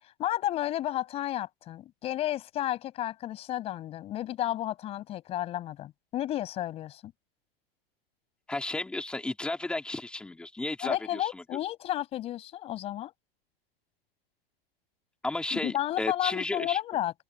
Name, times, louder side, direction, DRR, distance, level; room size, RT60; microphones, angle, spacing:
voice 1, 0.2-7.1 10.8-13.1 15.5-17.1, left 13 dB, 20° left, 6.6 m, -32 dB
voice 2, 8.5-11.4 15.2-16.8, left 2 dB, 5° left, 3.0 m, -33 dB
supercardioid pair, 170°, 30 cm